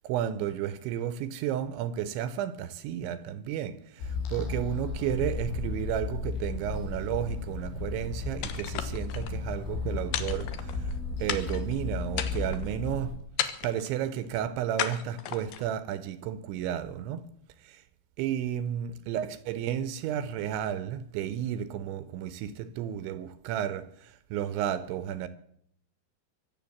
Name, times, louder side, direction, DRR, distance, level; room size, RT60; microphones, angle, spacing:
voice 1, 0.0-10.9 11.2-13.2 13.6-17.3 17.6-17.8 18.2-25.3, right 10 dB, 80° right, 2.9 m, -32 dB
sound 1, 4.0-13.2, left 4 dB, 90° left, 5.3 m, -34 dB
sound 2, 8.4-9.3 10.1-10.9 11.3-11.7 12.1-12.7 13.4-13.9 14.8-15.7, left 10 dB, 70° left, 2.5 m, -34 dB
24.0 x 8.1 x 7.1 m
omnidirectional pair, 5.6 m